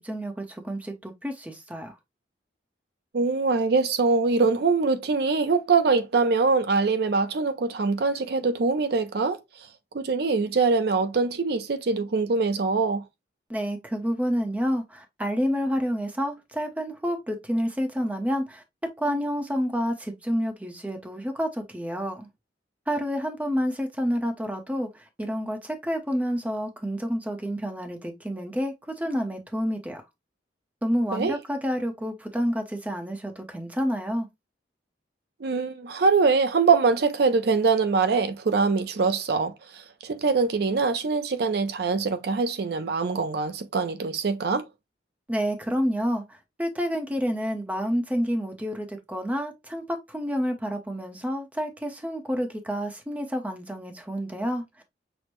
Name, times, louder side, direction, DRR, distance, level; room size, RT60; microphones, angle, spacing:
voice 1, 0.0-1.9 13.5-18.6 19.0-22.3 22.9-30.0 30.8-34.3 45.3-54.6, equal, 10° right, 0.7 m, -29 dB
voice 2, 3.1-9.4 9.9-13.0 31.1-31.4 35.4-44.6, right 4 dB, 60° right, 0.5 m, -23 dB
6.1 x 2.0 x 3.0 m
head